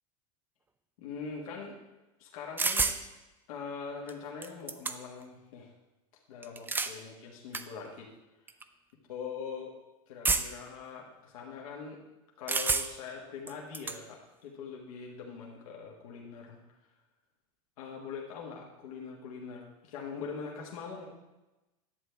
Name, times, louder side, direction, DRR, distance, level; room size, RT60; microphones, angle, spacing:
voice 1, 1.0-1.8 2.2-2.9 3.5-5.7 6.3-8.1 9.1-9.7 10.1-12.0 12.4-16.6 17.8-21.0, left 5 dB, 75° left, -2 dB, 1.5 m, -42 dB
sound 1, 2.6-3.0 4.1-4.2 4.4-5.2 6.4-7.0 7.5-7.6 8.5-8.6 10.2-10.7 12.5-13.1 13.5-14.0, right 4 dB, 10° right, 0.4 m, -29 dB
11.0 x 7.9 x 3.4 m, 1.1 s
supercardioid pair, 120°, 18 cm